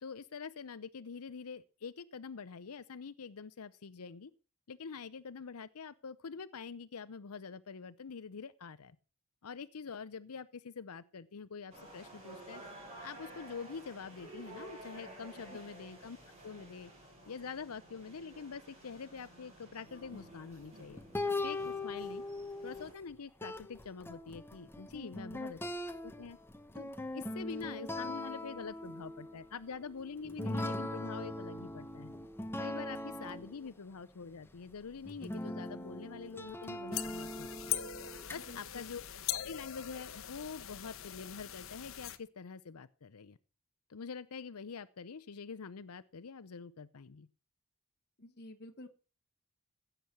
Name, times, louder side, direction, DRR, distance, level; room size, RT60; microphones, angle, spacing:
voice 1, 0.0-4.3 4.7-9.0 9.4-12.6 13.0-16.2 16.4-16.9 17.3-21.0 21.4-22.2 22.6-26.4 26.7-32.1 32.6-37.7 38.3-39.0 39.3-43.4 43.9-47.3, left 5 dB, 85° left, 13 dB, 0.7 m, -45 dB
sound 1, 11.7-22.9, right 2 dB, 30° right, 8.0 m, -52 dB
sound 2, 19.9-23.1 23.4-33.7 34.5-34.6 35.0-38.4, left 1 dB, 10° left, 0.9 m, -41 dB
sound 3, 36.9-42.2, left 11 dB, 65° left, 1.0 m, -41 dB
voice 2, 48.2-48.9, left 1 dB, 45° left, 2 dB, 1.2 m, -50 dB
16.0 x 8.1 x 6.0 m, 0.36 s
head